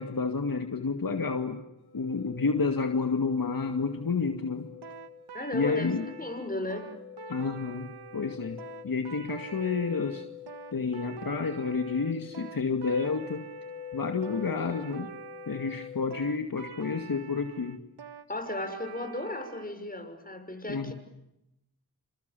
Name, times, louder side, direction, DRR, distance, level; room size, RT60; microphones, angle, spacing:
voice 1, 0.0-1.6 1.9-4.7 5.5-6.1 7.3-10.2 10.7-13.5 13.9-15.1 15.5-17.8 20.7-20.9, left 4 dB, 60° left, 5 dB, 2.2 m, -30 dB
sound 1, 1.8-16.1, left 8 dB, 75° left, 4.7 m, -46 dB
sound 2, 4.8-19.7, right 7 dB, 90° right, 1.5 m, -46 dB
voice 2, 5.3-5.9 6.2-6.9 18.3-20.9, left 1 dB, 20° left, 7 dB, 6.4 m, -35 dB
29.0 x 27.0 x 7.0 m, 0.86 s
cardioid pair, 50°, 38 cm